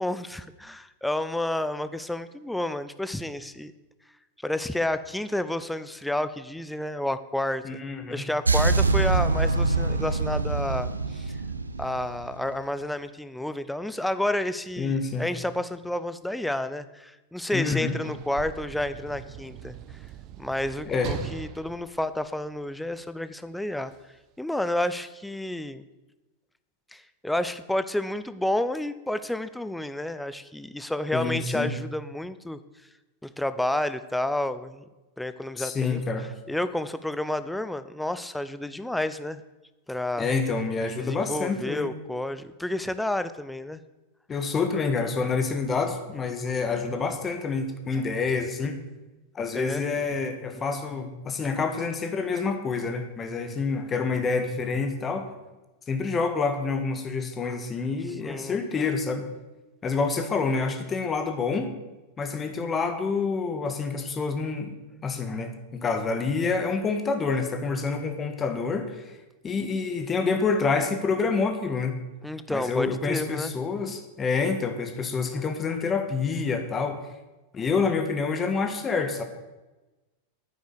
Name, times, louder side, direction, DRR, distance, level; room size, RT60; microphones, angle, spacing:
voice 1, 0.0-3.7 4.4-7.8 8.1-11.4 11.8-19.7 20.4-23.9 24.4-25.8 26.9-32.6 33.2-34.8 35.2-36.0 36.5-39.4 39.9-40.3 41.0-43.8 49.5-49.8 58.2-58.6 72.2-73.5, left 1 dB, 5° left, 13 dB, 0.6 m, -30 dB
voice 2, 7.6-8.2 14.8-15.3 17.5-18.0 20.9-21.1 31.1-31.7 35.6-36.2 40.2-41.9 44.3-48.8 49.3-55.3 55.9-59.3 59.8-61.7 62.2-64.8 65.0-69.0 69.4-72.0 72.5-77.0 77.5-79.2, left 4 dB, 20° left, 7 dB, 1.6 m, -27 dB
sound 1, 8.5-12.5, right 3 dB, 80° right, 0.7 m, -24 dB
Sliding door / Slam, 17.6-23.0 23.9-24.0, right 11 dB, 40° right, 0.9 m, -40 dB
9.6 x 9.2 x 6.8 m, 1.1 s
figure-of-eight pair, 90°, 0 cm